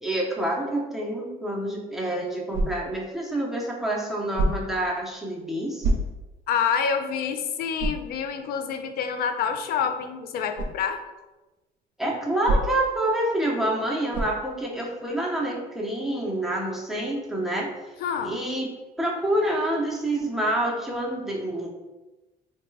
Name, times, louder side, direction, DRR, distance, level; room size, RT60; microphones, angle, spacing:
voice 1, 0.0-5.9 12.0-17.7 18.2-21.7, right 1 dB, ahead, -3 dB, 0.7 m, -27 dB
sound 1, 2.5-3.0 4.3-4.8 5.8-6.4 6.9-7.0 7.8-8.1 10.5-10.8 12.4-13.0 14.1-14.5, right 1 dB, 55° right, 0.6 m, -26 dB
voice 2, 6.5-11.0 18.0-18.4, left 7 dB, 65° left, 7 dB, 0.4 m, -27 dB
3.6 x 2.3 x 3.2 m, 1.1 s
cardioid pair, 110°, 17 cm